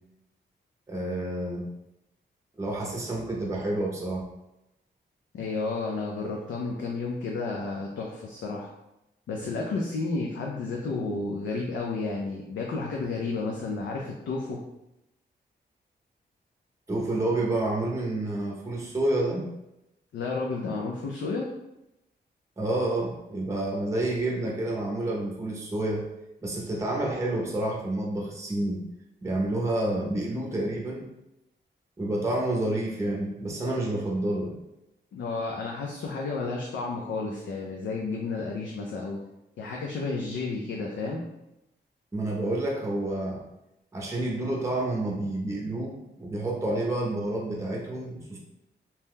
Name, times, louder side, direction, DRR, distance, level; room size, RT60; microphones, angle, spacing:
voice 1, 0.9-1.6 2.6-4.3 16.9-19.5 22.6-26.1 26.4-28.8 29.2-31.1 32.0-34.6 42.1-43.4 43.9-48.4, right 1 dB, 15° right, -2 dB, 0.6 m, -29 dB
voice 2, 5.3-8.7 9.3-14.6 20.1-21.5 35.1-39.2 39.6-41.3, left 3 dB, 85° left, -1 dB, 0.5 m, -31 dB
2.8 x 2.2 x 3.5 m, 0.89 s
cardioid pair, 75°, 19 cm